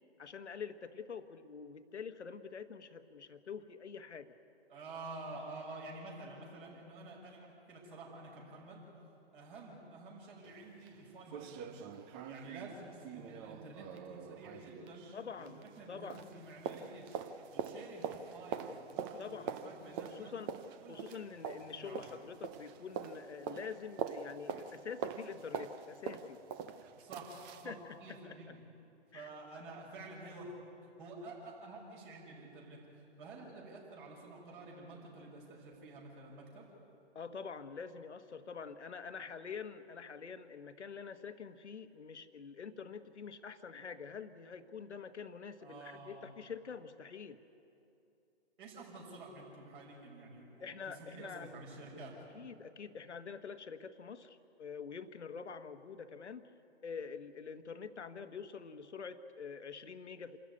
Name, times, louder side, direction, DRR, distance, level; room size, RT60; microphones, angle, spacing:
voice 1, 0.2-4.3 15.1-15.6 15.9-16.2 19.2-19.5 20.0-20.6 20.9-26.4 27.6-28.5 29.1-29.3 37.1-47.4 50.6-51.5 52.3-56.5 56.8-60.4, left 6 dB, 80° left, 9 dB, 1.4 m, -46 dB
voice 2, 4.7-8.9 9.3-15.1 15.4-17.2 17.5-20.3 20.8-21.2 21.7-22.0 26.9-27.7 28.0-28.6 29.1-30.5 30.8-36.7 45.6-46.3 48.6-52.2, right 2 dB, 50° right, -2 dB, 5.9 m, -50 dB
sound 1, 10.4-10.5 10.9-11.0 11.3-15.9 16.1-27.7 28.1-28.2, right 7 dB, 20° right, 0.7 m, -44 dB
27.0 x 13.5 x 9.6 m, 2.8 s
figure-of-eight pair, 135°, 34 cm